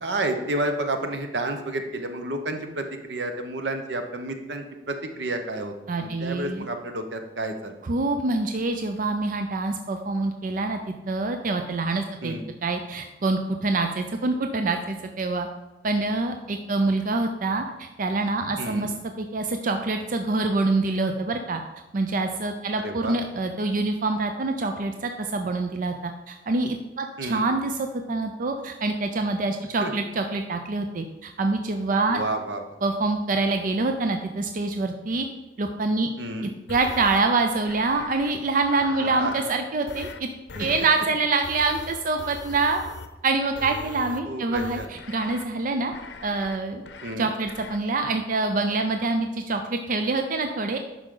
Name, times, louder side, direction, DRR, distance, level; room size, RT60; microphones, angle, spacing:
voice 1, 0.0-5.7 6.0-7.8 12.2-12.4 18.6-18.9 22.8-23.2 27.2-27.4 29.8-29.9 32.1-32.7 36.2-36.5 39.0-39.3 40.5-40.7 44.2-44.9 47.0-47.3, right 2 dB, 80° right, 6 dB, 0.9 m, -30 dB
voice 2, 5.9-6.7 7.8-10.8 11.1-12.3 12.6-15.5 15.8-18.9 19.2-21.6 21.9-32.2 32.8-35.3 35.6-36.1 36.7-40.3 40.6-42.8 43.2-45.9 46.2-46.8 47.2-50.8, right 3 dB, 50° right, 6 dB, 0.5 m, -26 dB
sound 1, 36.7-37.2 37.7-38.3 38.6-39.5 39.9-40.2 40.5-40.9 41.4-43.1 43.5-44.2 44.5-45.4 45.9-46.6 46.9-47.1 47.5-47.8, left 4 dB, 90° left, 0.6 m, -40 dB
11.5 x 5.0 x 3.8 m, 1.0 s
head